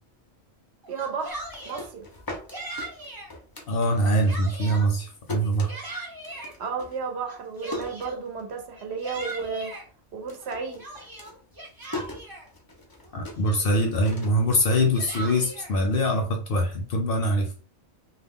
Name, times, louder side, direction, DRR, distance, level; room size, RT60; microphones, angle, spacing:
Yell, 0.8-1.9 2.5-3.3 3.8-4.9 5.4-6.5 7.3-8.2 8.7-9.8 10.4-12.5 13.1-13.2 13.4-13.9 14.7-15.7, right 2 dB, 25° right, 0.5 m, -39 dB
voice 1, 0.9-2.0 6.6-9.7 10.1-10.8, right 5 dB, 65° right, 4 dB, 0.8 m, -33 dB
sound 1, 1.3-4.2 4.5-8.7 9.0-9.6 9.9-16.1, left 2 dB, 30° left, 0.4 m, -41 dB
voice 2, 3.7-5.7 13.1-17.5, equal, 60° left, 2 dB, 0.7 m, -23 dB
2.3 x 2.1 x 3.5 m, 0.40 s
omnidirectional pair, 1.2 m